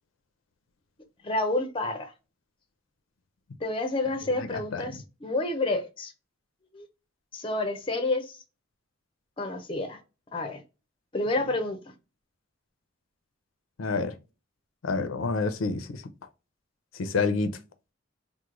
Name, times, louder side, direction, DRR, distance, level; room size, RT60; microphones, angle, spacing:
voice 1, 1.2-2.1 3.6-6.1 6.7-6.9 7.3-8.4 9.4-10.0 10.3-10.6 11.1-11.8, left 2 dB, 25° left, 0.5 m, -29 dB
voice 2, 4.4-4.9 13.8-14.1 14.8-16.0 17.0-17.6, left 4 dB, 85° left, 0.5 m, -28 dB
3.0 x 2.1 x 3.6 m
head